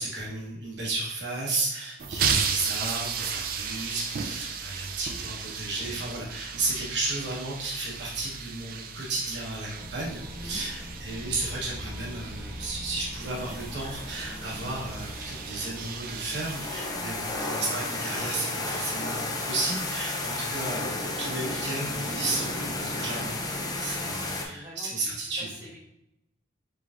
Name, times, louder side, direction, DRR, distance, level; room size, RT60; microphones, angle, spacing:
voice 1, 0.0-20.9 21.2-23.3 23.8-25.5, right 2 dB, 65° right, -4 dB, 1.0 m, -33 dB
sound 1, 2.0-17.4, right 6 dB, 50° right, 0.3 m, -35 dB
sound 2, 9.8-16.3, left 1 dB, 80° left, 1.4 m, -42 dB
voice 2, 10.3-10.6 16.9-17.2 23.9-25.8, equal, 15° right, -8 dB, 1.4 m, -46 dB
sound 3, 13.2-24.4, left 2 dB, 20° left, 0.5 m, -33 dB
4.6 x 3.5 x 2.5 m, 0.86 s
head